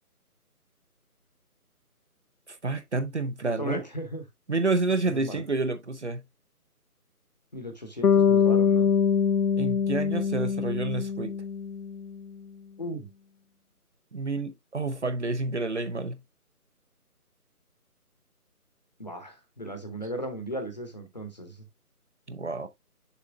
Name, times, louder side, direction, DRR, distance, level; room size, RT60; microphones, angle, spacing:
voice 1, 2.5-3.8 4.5-6.2 9.6-11.3 14.1-16.2 22.3-22.7, right 3 dB, 50° right, 0.7 m, -29 dB
voice 2, 3.6-4.2 5.1-5.4 7.5-8.9 12.8-13.1 19.0-21.6, equal, 30° left, 0.9 m, -36 dB
Bass guitar, 8.0-12.1, left 6 dB, 85° left, 0.6 m, -24 dB
6.9 x 5.8 x 2.4 m
figure-of-eight pair, 155°, 45 cm